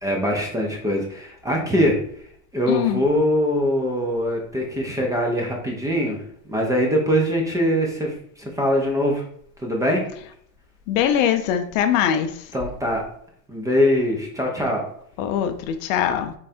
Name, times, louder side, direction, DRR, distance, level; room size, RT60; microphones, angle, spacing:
voice 1, 0.0-2.0 2.5-9.2 9.6-10.0 12.5-13.0 13.5-14.8, equal, 5° right, 0.6 m, -22 dB
voice 2, 2.7-3.0 10.9-12.5 15.2-16.3, left 9 dB, 55° left, 0.6 m, -22 dB
3.8 x 3.2 x 4.3 m
supercardioid pair, 140°, 49 cm